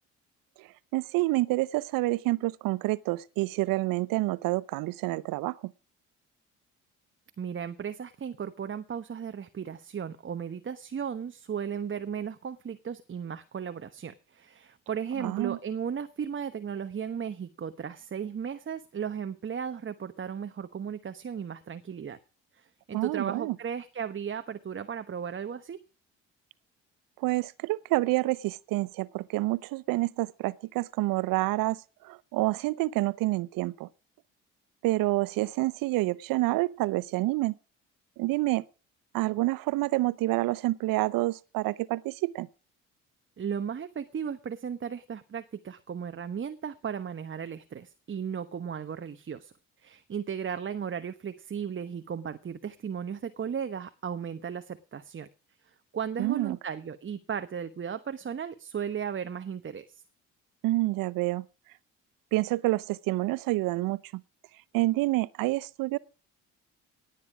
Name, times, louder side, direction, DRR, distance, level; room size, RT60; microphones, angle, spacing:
voice 1, 0.9-5.6 15.2-15.6 22.9-23.6 27.2-33.9 34.8-37.5 38.2-38.6 39.1-42.5 56.2-56.6 60.6-61.4 62.3-64.2 64.7-66.0, right 19 dB, 65° right, 0.8 m, -28 dB
voice 2, 7.4-22.2 22.5-25.8 43.4-49.5 49.8-55.3 55.9-60.0, right 7 dB, 30° right, 1.1 m, -35 dB
18.0 x 9.2 x 5.0 m
hypercardioid pair, 55°, 37 cm